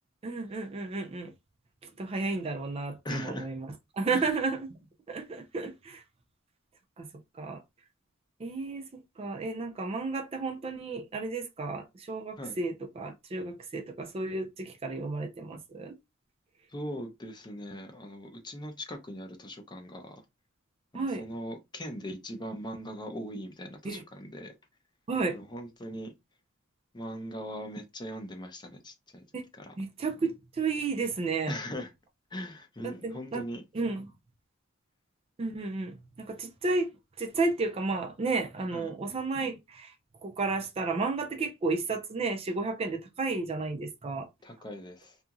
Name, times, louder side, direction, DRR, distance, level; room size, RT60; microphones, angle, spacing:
voice 1, 0.2-1.3 2.0-3.7 3.9-4.7 5.1-6.0 7.0-7.1 7.4-7.6 8.4-8.9 9.2-16.0 20.9-21.2 23.8-24.0 25.1-25.4 29.3-29.4 29.8-31.5 33.0-33.4 33.7-34.1 35.4-36.9 37.2-39.9 40.2-44.3, right 3 dB, 30° right, 0.4 m, -32 dB
voice 2, 3.0-3.5 4.1-4.4 12.4-12.6 16.7-20.2 20.9-24.5 25.3-26.1 26.9-29.2 29.5-29.7 31.5-31.9 32.3-33.6 38.7-38.9 44.4-45.2, equal, 20° left, 0.6 m, -40 dB
2.8 x 2.5 x 2.4 m
head